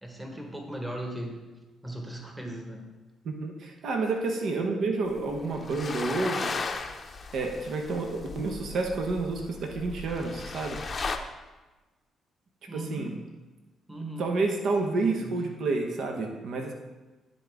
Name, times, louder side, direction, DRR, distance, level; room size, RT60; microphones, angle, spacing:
voice 1, 0.0-1.4 1.8-3.0 12.7-13.2 13.9-14.3 15.1-15.4, right 1 dB, 10° right, 2 dB, 1.3 m, -38 dB
voice 2, 3.2-6.5 7.3-10.8 12.7-13.1 14.2-16.7, right 3 dB, 65° right, 3 dB, 0.9 m, -29 dB
sound 1, 5.1-11.2, left 4 dB, 45° left, 0.6 m, -36 dB
10.0 x 3.8 x 3.5 m, 1.2 s
hypercardioid pair, 50°, 0 cm